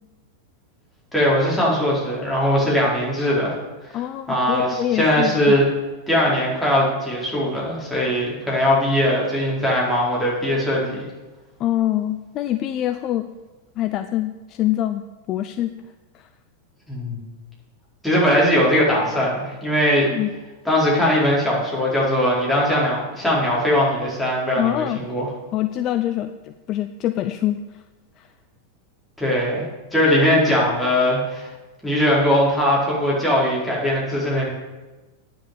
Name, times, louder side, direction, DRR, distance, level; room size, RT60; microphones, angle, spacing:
voice 1, 1.1-3.6 3.8-4.0 4.3-5.6 6.1-11.1 16.9-17.2 18.0-20.1 20.6-25.3 29.2-31.5 31.8-34.5, equal, 5° left, -6 dB, 4.5 m, -20 dB
voice 2, 3.9-5.5 11.6-13.3 13.8-15.7 16.1-16.3 20.1-20.3 24.6-25.0 25.5-27.6 28.2-28.3, left 13 dB, 35° left, 10 dB, 0.5 m, -25 dB
9.8 x 6.9 x 8.0 m, 1.2 s
figure-of-eight pair, 90°, 0 cm